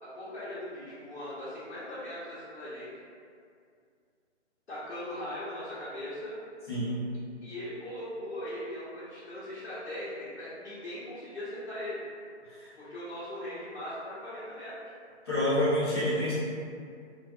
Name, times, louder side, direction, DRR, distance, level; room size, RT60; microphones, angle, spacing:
voice 1, 0.0-2.9 4.7-6.4 7.4-12.0 12.8-14.7, left 1 dB, 65° left, -11 dB, 0.8 m, -39 dB
voice 2, 6.7-7.0 12.5-12.7 15.3-16.3, left 1 dB, 20° left, -12 dB, 0.6 m, -28 dB
2.4 x 2.2 x 2.3 m, 2.3 s
hypercardioid pair, 155°, 34 cm